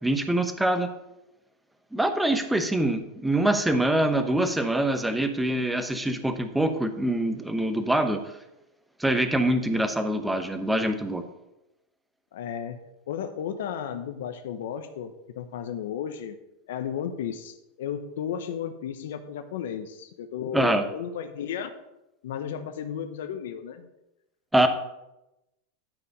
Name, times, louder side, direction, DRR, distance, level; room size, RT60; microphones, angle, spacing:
voice 1, 0.0-0.9 1.9-8.2 9.0-11.2 20.5-20.8 24.5-24.7, right 1 dB, 5° right, 7 dB, 0.9 m, -24 dB
voice 2, 12.3-12.8 13.1-16.4 16.7-21.7 22.2-23.9, left 8 dB, 80° left, 8 dB, 0.9 m, -34 dB
12.0 x 4.9 x 5.4 m, 0.92 s
supercardioid pair, 140°, 0 cm